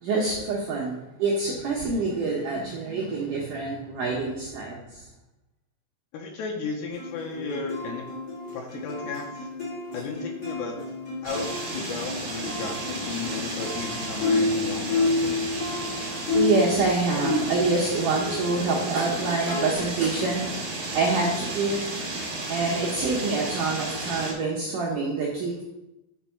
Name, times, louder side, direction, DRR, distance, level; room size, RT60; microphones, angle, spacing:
voice 1, 0.0-5.0 16.3-21.9 22.5-25.6, right 3 dB, 75° right, -2 dB, 1.9 m, -26 dB
voice 2, 6.1-8.1 8.5-9.5 9.9-10.8 11.2-15.8, left 4 dB, 80° left, 1 dB, 2.9 m, -35 dB
sound 1, 6.9-17.8 18.1-19.7, left 2 dB, 30° left, 1.7 m, -30 dB
sound 2, 11.2-24.3, right 2 dB, 50° right, 1.6 m, -33 dB
6.1 x 5.4 x 5.7 m, 0.91 s
omnidirectional pair, 5.1 m